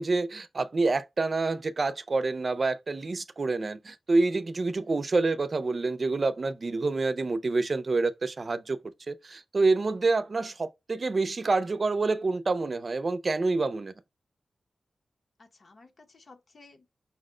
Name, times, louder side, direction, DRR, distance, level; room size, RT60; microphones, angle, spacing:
voice 1, 0.0-8.8 9.1-13.9, right 3 dB, 50° right, 0.5 m, -27 dB
voice 2, 15.4-16.9, left 3 dB, 60° left, 0.8 m, -55 dB
5.6 x 2.1 x 3.7 m
wide cardioid pair, 80°, 0 cm